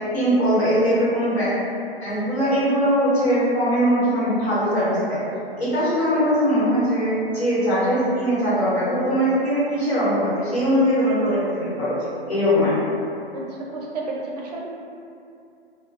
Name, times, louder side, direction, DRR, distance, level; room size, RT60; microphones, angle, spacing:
voice 1, 0.1-1.5 2.0-5.0 5.6-12.0 12.3-12.8, equal, 80° left, -10 dB, 1.3 m, -21 dB
voice 2, 13.3-14.6, right 3 dB, 45° right, -3 dB, 0.4 m, -31 dB
2.2 x 2.1 x 2.7 m, 2.6 s
figure-of-eight pair, 125°, 31 cm